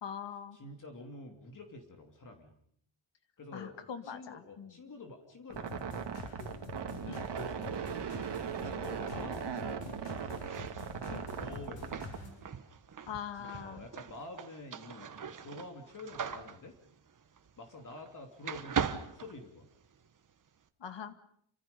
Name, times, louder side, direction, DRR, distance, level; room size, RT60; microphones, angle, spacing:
voice 1, 0.0-0.6 3.5-4.8 7.0-7.2 9.1-9.3 11.1-11.3 13.1-13.9 20.8-21.1, left 8 dB, 60° left, 9 dB, 2.1 m, -42 dB
voice 2, 0.5-2.5 3.4-3.8 4.0-6.0 6.9-8.2 8.6-10.4 10.9-12.1 13.5-16.7 17.6-19.7, left 2 dB, 40° left, 3 dB, 3.1 m, -48 dB
sound 1, 5.5-12.3, left 3 dB, 80° left, 6.8 m, -46 dB
sound 2, 5.5-12.2, right 7 dB, 55° right, 2.2 m, -38 dB
sound 3, 10.3-18.1 18.4-20.1, right 7 dB, 40° right, 1.4 m, -40 dB
28.5 x 26.0 x 5.4 m, 0.69 s
wide cardioid pair, 165°, 48 cm